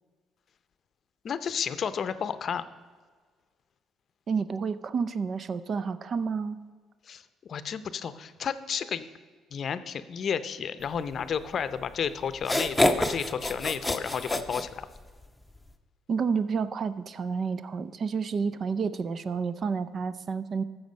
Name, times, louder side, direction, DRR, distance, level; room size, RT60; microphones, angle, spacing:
voice 1, 1.2-2.6 7.0-9.1 9.5-14.9, left 7 dB, 55° left, 13 dB, 0.6 m, -32 dB
voice 2, 4.3-6.6 16.1-20.6, right 5 dB, 50° right, 14 dB, 0.6 m, -30 dB
sound 1, 11.8-11.9 12.4-15.2, left 1 dB, 10° left, 0.8 m, -27 dB
13.0 x 7.2 x 5.2 m, 1.5 s
supercardioid pair, 80°, 0 cm